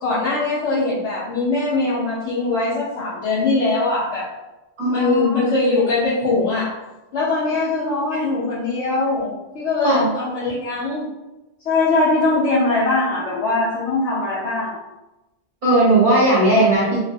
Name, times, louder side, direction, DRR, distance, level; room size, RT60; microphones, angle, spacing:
voice 1, 0.0-4.2 4.8-6.7 7.1-11.1 11.6-14.7, left 3 dB, 85° left, -10 dB, 1.0 m, -21 dB
voice 2, 4.8-5.4 9.8-10.1 15.6-17.0, right 1 dB, 50° right, -9 dB, 1.2 m, -17 dB
3.0 x 2.1 x 2.7 m, 1.0 s
omnidirectional pair, 1.1 m